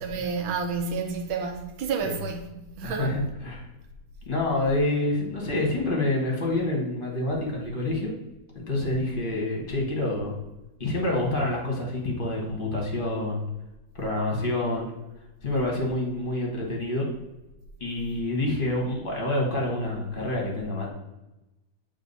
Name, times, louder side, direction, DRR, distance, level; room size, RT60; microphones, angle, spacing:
voice 1, 0.0-3.2, right 5 dB, 80° right, 1.6 m, -30 dB
voice 2, 2.8-3.6 4.3-8.1 8.5-10.4 10.8-13.4 13.9-14.8 15.4-17.1 17.8-20.9, left 2 dB, 30° left, 1.3 m, -27 dB
7.3 x 3.5 x 4.0 m
omnidirectional pair, 2.2 m